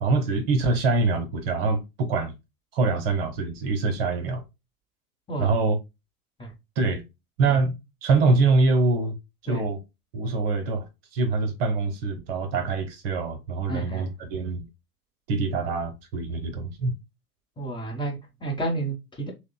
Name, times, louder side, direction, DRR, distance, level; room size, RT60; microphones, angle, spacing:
voice 1, 0.0-2.3 2.7-4.4 5.4-5.8 6.8-7.0 7.4-9.2 9.4-9.8 10.1-14.6 15.3-16.9, right 3 dB, 40° right, 0.9 m, -24 dB
voice 2, 13.7-14.0 17.6-19.3, right 2 dB, 10° left, 1.0 m, -31 dB
6.3 x 2.2 x 2.3 m
figure-of-eight pair, 90°, 44 cm